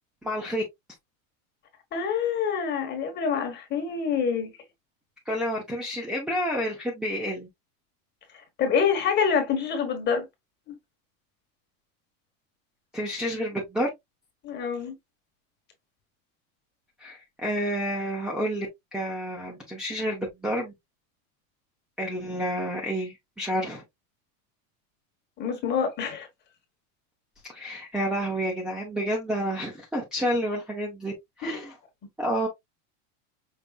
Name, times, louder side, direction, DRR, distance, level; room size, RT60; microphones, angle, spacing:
voice 1, 0.2-0.6 5.3-7.5 12.9-13.9 17.0-18.7 18.9-20.7 22.0-23.8 27.5-31.1 31.4-31.7 32.2-32.5, equal, ahead, 0.7 m, -29 dB
voice 2, 1.9-4.5 8.6-10.2 10.7-10.8 14.4-14.9 25.4-26.3 31.4-31.7, left 6 dB, 25° left, 1.3 m, -26 dB
5.5 x 3.2 x 2.4 m
supercardioid pair, 165°, 42 cm